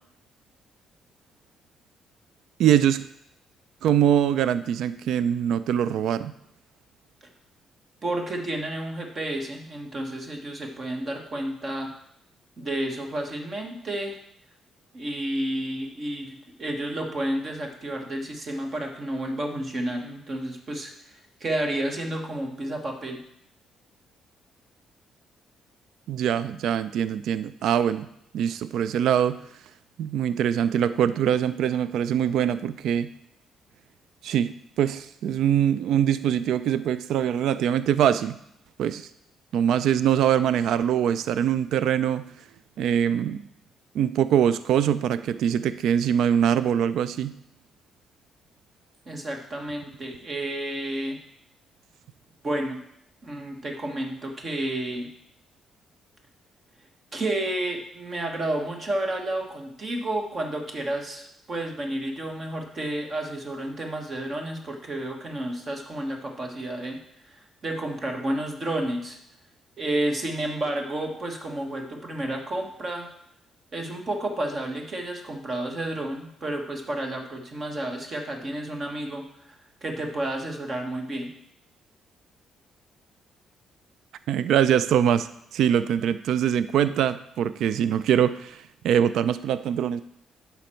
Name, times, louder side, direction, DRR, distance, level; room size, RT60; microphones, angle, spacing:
voice 1, 2.6-3.0 3.8-6.3 26.1-28.1 28.3-29.4 30.0-33.1 34.2-38.4 38.8-39.1 39.5-42.2 42.8-43.4 43.9-47.3 84.3-90.0, right 9 dB, 80° right, 14 dB, 0.3 m, -23 dB
voice 2, 8.0-11.9 12.6-14.2 14.9-20.9 21.4-23.2 49.1-51.2 52.4-52.8 53.2-55.1 57.1-67.0 67.3-69.2 69.8-73.1 73.7-81.3, right 1 dB, 40° right, 3 dB, 1.3 m, -31 dB
9.3 x 5.7 x 4.4 m, 0.76 s
cardioid pair, 90°, 0 cm